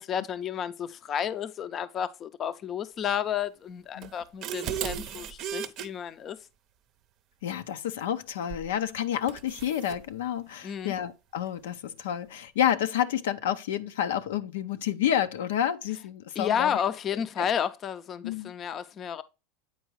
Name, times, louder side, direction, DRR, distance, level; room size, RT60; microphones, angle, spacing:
voice 1, 0.0-6.4 10.6-10.9 16.4-19.2, left 8 dB, 35° left, 0.5 m, -31 dB
sound 1, 4.0-5.9 8.5-8.7 9.3-10.0, right 9 dB, 50° right, 0.6 m, -35 dB
voice 2, 7.4-16.8 17.4-17.5 18.2-18.5, left 10 dB, 85° left, 0.5 m, -29 dB
8.1 x 4.5 x 3.0 m
supercardioid pair, 115°, 0 cm